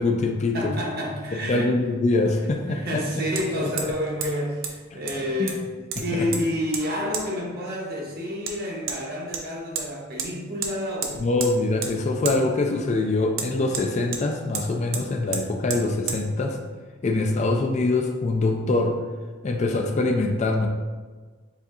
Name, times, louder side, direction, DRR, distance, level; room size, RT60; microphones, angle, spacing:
voice 1, 0.0-0.7 1.5-3.0 4.9-5.0 5.4-5.5 6.0-6.3 11.2-16.6 17.0-18.9 19.4-20.7, left 2 dB, 35° left, 3 dB, 0.3 m, -24 dB
voice 2, 0.5-1.7 2.7-5.6 6.0-11.3, left 1 dB, 50° right, -2 dB, 0.9 m, -29 dB
Hammer, 3.4-3.5 3.8-4.0 4.2-4.3 4.6-4.7 5.1-5.6 5.9-6.4 6.7-6.8 7.1-7.3 8.5-8.6 8.9-9.0 9.3-9.9 10.2-10.3 10.6-10.7 11.0-11.5 11.8-11.9 12.2-12.4 13.3-14.2 14.5-14.7 14.9-15.0 15.3-15.4 15.7-16.2, right 6 dB, 70° right, 0.6 m, -30 dB
7.0 x 2.7 x 2.4 m, 1.4 s
head